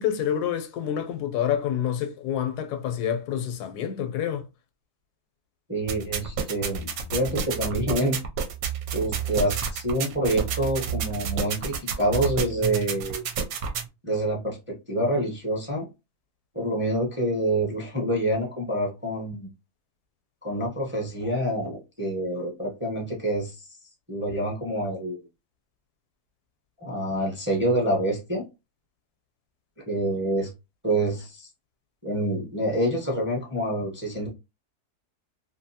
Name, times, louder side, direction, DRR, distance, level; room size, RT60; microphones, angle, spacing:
voice 1, 0.0-4.5, left 9 dB, 85° left, 1.1 m, -28 dB
voice 2, 5.7-8.2 8.9-13.2 14.0-15.9 16.5-19.5 20.4-23.7 24.1-25.2 26.8-28.4 29.9-30.5 30.8-31.5 32.0-34.3, right 1 dB, 10° right, 0.6 m, -27 dB
sound 1, 5.9-13.9, right 7 dB, 70° right, 1.0 m, -30 dB
2.6 x 2.6 x 2.7 m
omnidirectional pair, 1.6 m